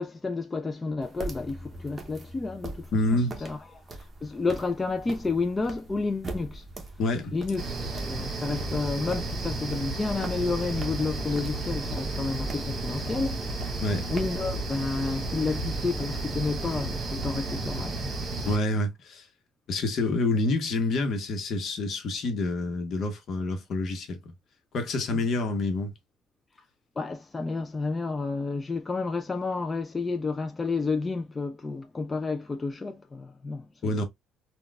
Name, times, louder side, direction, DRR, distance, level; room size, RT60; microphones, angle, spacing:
voice 1, 0.0-6.7 7.3-13.8 14.1-18.1 25.1-25.2 27.0-33.9, left 3 dB, 25° left, 0.4 m, -31 dB
sound 1, 1.0-16.5, right 2 dB, 30° right, 0.8 m, -43 dB
voice 2, 2.9-3.5 7.0-7.3 13.8-14.1 18.4-19.3 19.7-24.3 24.7-25.9 33.8-34.0, left 2 dB, 60° left, 1.0 m, -27 dB
sound 2, 7.6-18.6, right 2 dB, 45° right, 1.2 m, -32 dB
3.8 x 2.3 x 2.3 m
cardioid pair, 95°, 0 cm